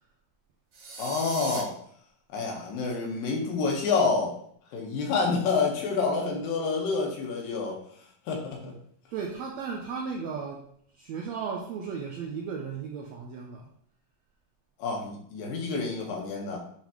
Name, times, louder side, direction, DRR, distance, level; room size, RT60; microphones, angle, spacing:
sound 1, 0.7-1.6, right 4 dB, 60° right, 3.4 m, -39 dB
voice 1, 1.0-1.7 2.3-4.3 4.7-7.8 8.3-8.7 14.8-16.6, left 4 dB, 80° left, -1 dB, 3.0 m, -28 dB
voice 2, 9.1-10.7 10.9-13.7, right 6 dB, 85° right, 0 dB, 1.5 m, -35 dB
9.6 x 3.6 x 3.0 m, 0.63 s
omnidirectional pair, 3.9 m